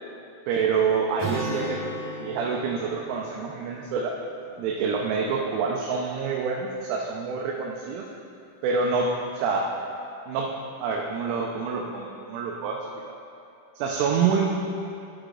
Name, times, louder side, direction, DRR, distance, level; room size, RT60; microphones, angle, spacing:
voice 1, 0.5-1.8 2.2-4.1 4.6-8.0 8.6-9.7 10.3-10.5 10.8-12.8 13.1-13.2 13.8-14.5, right 5 dB, 85° right, -1 dB, 3.0 m, -27 dB
Acoustic guitar, 1.2-4.9, right 1 dB, 60° right, 2.2 m, -36 dB
11.5 x 4.9 x 3.7 m, 2.5 s
omnidirectional pair, 5.7 m